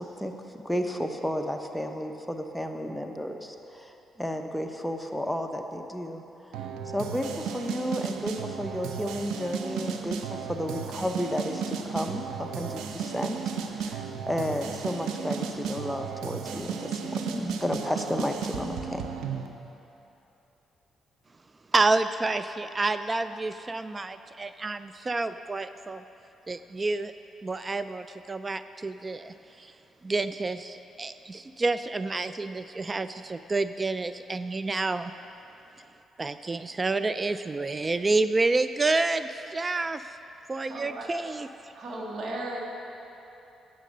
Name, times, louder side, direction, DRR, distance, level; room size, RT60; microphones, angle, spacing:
voice 1, 0.0-6.2 6.5-6.6 6.9-13.4 13.8-19.1, equal, 5° left, 4 dB, 0.9 m, -32 dB
sound 1, 6.5-19.5, right 6 dB, 85° right, 0.6 m, -34 dB
voice 2, 21.7-26.0 26.5-27.1 27.4-29.7 30.0-35.1 36.2-40.2 40.5-41.7, right 3 dB, 30° right, 12 dB, 0.3 m, -29 dB
voice 3, 40.7-41.1 41.7-42.6, right 1 dB, 60° right, -1 dB, 1.8 m, -35 dB
9.1 x 7.5 x 6.3 m, 3.0 s
supercardioid pair, 70°, 0 cm